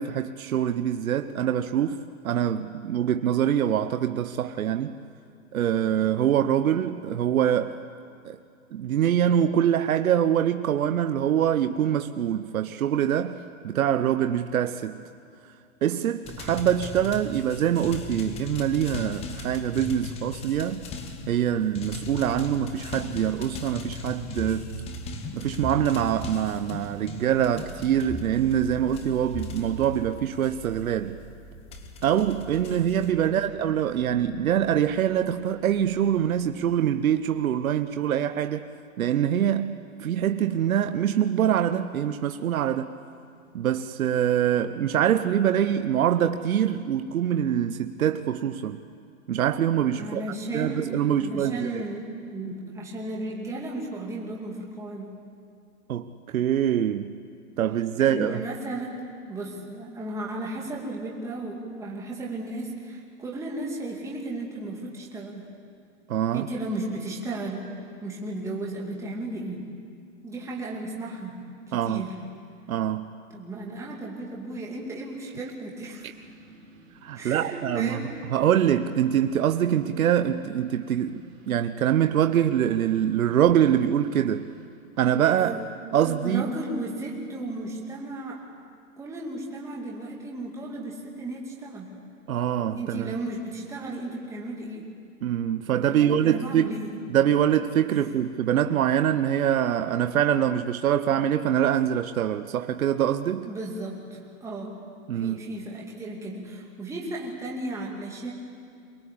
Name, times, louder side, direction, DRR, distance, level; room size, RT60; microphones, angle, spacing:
voice 1, 0.0-4.9 5.5-7.8 8.2-8.4 8.7-15.0 15.8-20.9 21.3-24.7 25.3-31.2 32.0-38.6 39.0-42.9 43.5-48.8 49.3-50.2 50.5-51.8 55.9-57.2 57.6-58.4 66.1-66.5 71.7-72.0 72.7-73.1 76.0-76.1 77.0-78.0 78.3-84.5 85.0-85.5 85.9-86.5 92.3-93.1 95.2-96.7 97.1-103.5 105.1-105.4, right 10 dB, 80° right, 0.9 m, -24 dB
sound 1, 16.2-31.1 31.7-33.1, left 3 dB, 15° left, 1.0 m, -38 dB
sound 2, 35.4-38.1, right 1 dB, 45° left, 3.3 m, -50 dB
voice 2, 50.0-55.2 57.9-59.0 59.3-65.5 66.3-69.6 70.2-71.3 71.7-72.1 73.3-76.1 77.1-78.1 85.4-85.6 86.0-88.4 89.0-91.9 92.8-94.9 95.9-97.0 97.9-98.0 103.4-104.8 105.1-108.3, right 2 dB, 5° right, 2.3 m, -35 dB
sound 3, 75.9-84.7, right 2 dB, 50° right, 5.2 m, -53 dB
23.0 x 19.5 x 8.5 m
hypercardioid pair, 155°, 41 cm